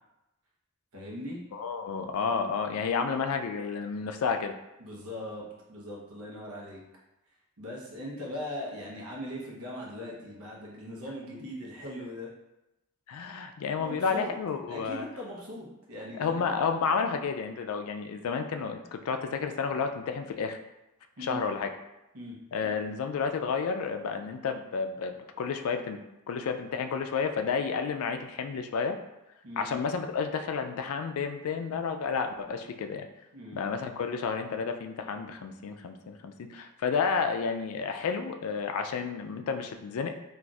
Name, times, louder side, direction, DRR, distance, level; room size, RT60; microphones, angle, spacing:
voice 1, 0.9-1.4 4.8-6.8 7.6-12.3 13.8-14.3 14.7-16.4 21.2-21.4 22.1-22.4 29.4-29.7 33.3-33.6, left 1 dB, 75° right, -3 dB, 0.9 m, -40 dB
voice 2, 1.5-4.5 13.1-15.0 16.2-20.6 21.2-21.7 22.5-26.0 26.3-29.0 29.6-33.1 33.5-40.1, left 5 dB, 75° left, 6 dB, 0.3 m, -31 dB
4.0 x 2.5 x 2.3 m, 0.94 s
head